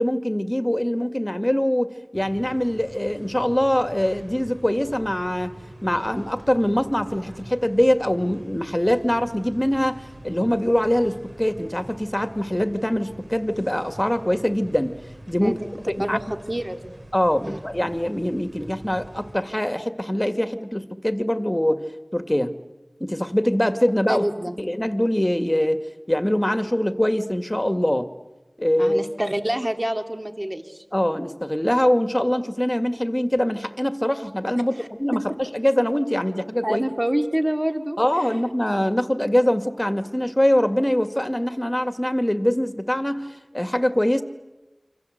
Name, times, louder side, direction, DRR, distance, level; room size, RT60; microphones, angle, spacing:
voice 1, 0.0-5.5 5.8-14.9 15.3-15.6 16.1-16.2 17.1-21.8 22.1-22.6 23.0-24.3 24.6-28.1 28.6-29.0 30.9-36.8 38.0-44.2, left 1 dB, 20° left, 9 dB, 2.1 m, -23 dB
sound 1, 2.1-19.4, right 1 dB, 80° right, 4.2 m, -44 dB
voice 2, 16.5-16.9 17.4-17.6 24.1-24.6 28.8-30.8 34.7-34.9 36.6-38.4, right 1 dB, 25° right, 6 dB, 2.3 m, -27 dB
28.0 x 26.0 x 8.0 m, 1.1 s
wide cardioid pair, 40°, 0 cm